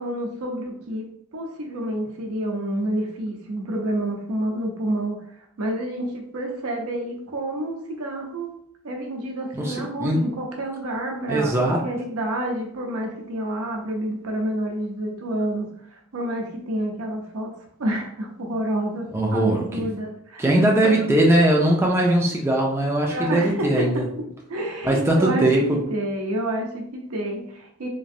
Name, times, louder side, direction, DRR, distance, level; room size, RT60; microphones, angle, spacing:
voice 1, 0.0-5.2 5.6-8.5 8.8-17.5 17.8-20.5 20.8-21.3 23.1-24.0 24.5-27.9, right 1 dB, 80° right, 1 dB, 0.7 m, -29 dB
voice 2, 9.5-10.2 11.3-11.9 19.1-19.8 20.4-24.1 24.8-25.8, right 1 dB, 10° right, -1 dB, 0.3 m, -20 dB
3.0 x 2.5 x 2.6 m, 0.68 s
head